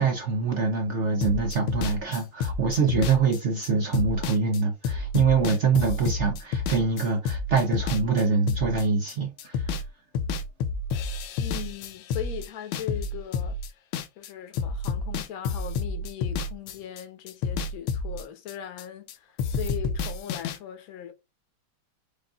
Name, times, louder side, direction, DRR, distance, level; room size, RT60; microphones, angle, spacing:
voice 1, 0.0-9.7, right 5 dB, 75° right, 0.6 m, -24 dB
sound 1, 1.2-9.9 10.1-14.3 14.5-19.1 19.4-20.6, left 4 dB, 85° left, 1.5 m, -30 dB
voice 2, 11.4-13.6 14.2-21.1, left 10 dB, 55° left, 1.1 m, -39 dB
5.1 x 2.6 x 3.4 m
omnidirectional pair, 2.2 m